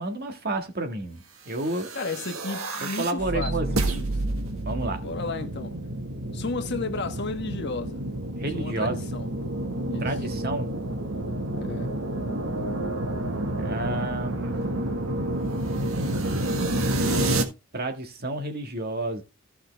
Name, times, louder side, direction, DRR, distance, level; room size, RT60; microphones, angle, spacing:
voice 1, 0.0-1.9 2.8-3.9 4.6-5.0 8.4-9.0 10.0-10.7 13.6-14.6 17.7-19.2, right 2 dB, 50° right, 1.7 m, -30 dB
sound 1, 1.7-17.4, right 1 dB, 80° right, 1.7 m, -29 dB
voice 2, 1.9-4.1 4.9-5.8 6.3-8.0 8.5-9.3 9.9-10.2 11.5-12.0, left 3 dB, 55° left, 1.3 m, -33 dB
15.5 x 5.7 x 3.4 m
head